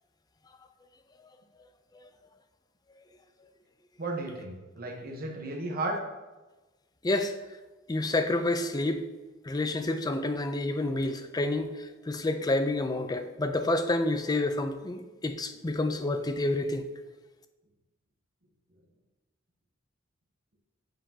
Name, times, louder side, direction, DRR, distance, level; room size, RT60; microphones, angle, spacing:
voice 1, 4.0-6.0, right 2 dB, 45° right, 2 dB, 1.0 m, -34 dB
voice 2, 7.0-7.4 7.9-9.1 9.4-16.8, left 2 dB, 20° left, 8 dB, 0.4 m, -29 dB
7.5 x 5.1 x 2.8 m, 1.2 s
head